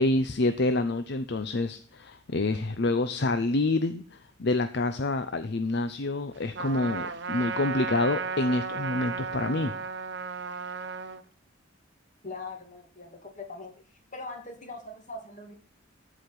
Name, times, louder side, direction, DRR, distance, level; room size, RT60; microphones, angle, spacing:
voice 1, 0.0-9.7, left 2 dB, 60° left, 10 dB, 0.7 m, -27 dB
Trumpet, 6.5-11.2, right 5 dB, 60° right, 0.9 m, -34 dB
voice 2, 12.2-13.7 14.1-15.5, left 3 dB, 40° left, 3 dB, 2.6 m, -41 dB
13.5 x 5.0 x 6.0 m, 0.42 s
head